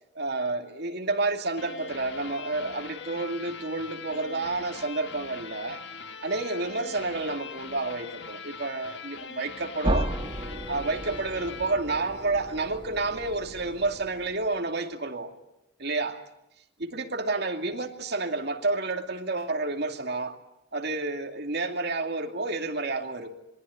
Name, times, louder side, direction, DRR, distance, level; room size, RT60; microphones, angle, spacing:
voice 1, 0.1-5.8 6.2-10.1 10.7-15.3 15.8-16.2 16.8-20.4 20.7-23.3, right 3 dB, 65° right, 4 dB, 2.5 m, -30 dB
sound 1, 1.6-12.8, left 5 dB, 70° left, 1.7 m, -42 dB
sound 2, 9.8-14.6, right 1 dB, 25° right, 1.5 m, -34 dB
27.0 x 21.0 x 9.5 m, 0.87 s
head